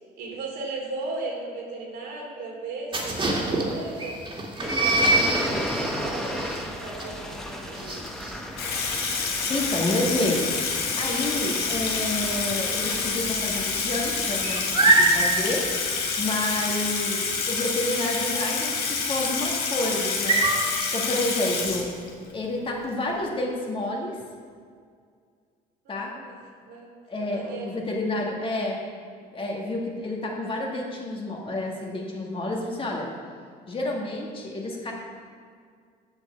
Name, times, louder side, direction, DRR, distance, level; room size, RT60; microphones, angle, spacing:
voice 1, 0.2-4.2 4.6-8.1 16.4-16.8 25.8-26.4 26.7-26.9 27.2-27.9, right 3 dB, 80° right, -1 dB, 2.8 m, -36 dB
sound 1, 2.9-12.4 12.7-13.1 13.3-20.7, right 2 dB, 30° right, 2.2 m, -26 dB
sound 2, 4.6-16.3, equal, 5° left, 1.0 m, -36 dB
Water tap faucet / Sink (filling or washing), 8.6-22.3, left 5 dB, 70° left, 1.6 m, -28 dB
voice 2, 9.5-10.5 11.0-15.6 16.2-20.5 20.9-21.9 22.3-24.2 25.9-26.1 27.1-28.8 29.3-33.1 33.7-34.9, left 1 dB, 30° left, -1 dB, 1.9 m, -29 dB
7.8 x 7.1 x 7.0 m, 2.1 s
cardioid pair, 110°, 17 cm